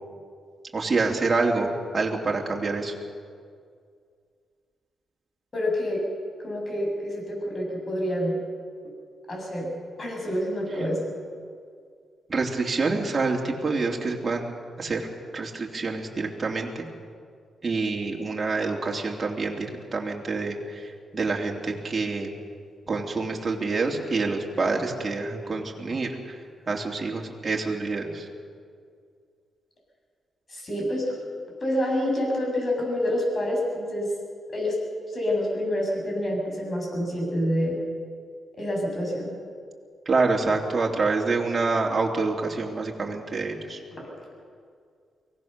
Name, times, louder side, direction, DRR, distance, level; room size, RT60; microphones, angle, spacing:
voice 1, 0.7-2.9 12.3-14.5 14.8-15.1 15.3-16.8 17.6-20.8 21.1-22.3 22.9-26.3 26.7-28.3 40.0-43.8, right 3 dB, 35° right, -1 dB, 3.3 m, -27 dB
voice 2, 5.5-6.0 6.4-8.4 9.3-9.7 10.0-11.0 30.5-31.2 31.6-34.1 34.5-34.7 35.1-37.8 38.5-39.3 43.9-44.1, left 1 dB, 40° left, -1 dB, 8.0 m, -27 dB
23.5 x 17.5 x 7.0 m, 2.2 s
cardioid pair, 75°, 0 cm